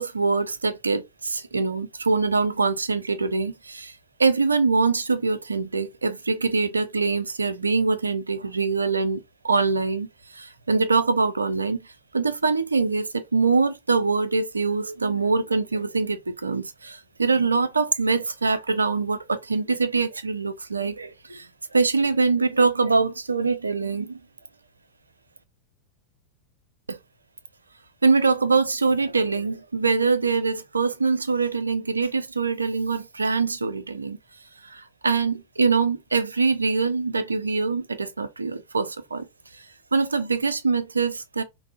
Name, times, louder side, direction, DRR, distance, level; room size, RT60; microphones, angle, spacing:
voice 1, 0.0-3.9 4.2-10.1 10.3-11.9 12.1-24.2 26.9-27.0 28.0-34.2 34.7-39.3 39.5-39.6 39.9-41.4, right 4 dB, 75° right, 0.4 m, -24 dB
3.5 x 2.0 x 2.4 m
figure-of-eight pair, 90°, 0 cm